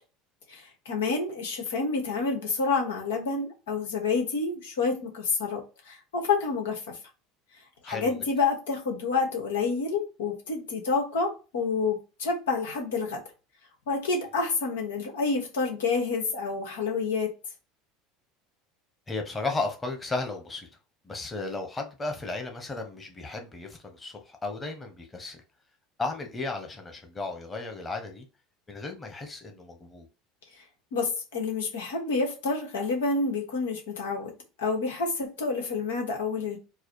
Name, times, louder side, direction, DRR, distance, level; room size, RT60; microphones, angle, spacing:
voice 1, 0.5-5.6 5.9-6.8 7.8-13.2 13.9-17.3 30.9-34.3 34.6-36.6, left 4 dB, 85° left, 1.3 m, -28 dB
voice 2, 7.8-8.2 19.1-20.7 21.0-25.4 26.0-28.3 28.7-30.1, left 3 dB, 20° left, 1.2 m, -34 dB
4.7 x 2.1 x 4.6 m
hypercardioid pair, 85°, 0 cm